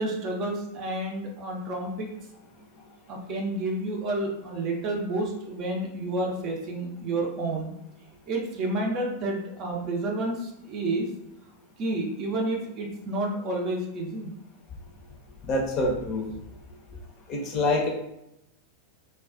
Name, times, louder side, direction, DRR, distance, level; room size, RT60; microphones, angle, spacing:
voice 1, 0.0-2.1 3.1-7.7 8.3-11.1 11.8-14.3, right 2 dB, 35° right, 0 dB, 0.5 m, -30 dB
voice 2, 15.4-16.3 17.3-17.9, left 2 dB, 35° left, 0 dB, 0.6 m, -26 dB
2.3 x 2.2 x 2.4 m, 0.84 s
figure-of-eight pair, 90°, 0 cm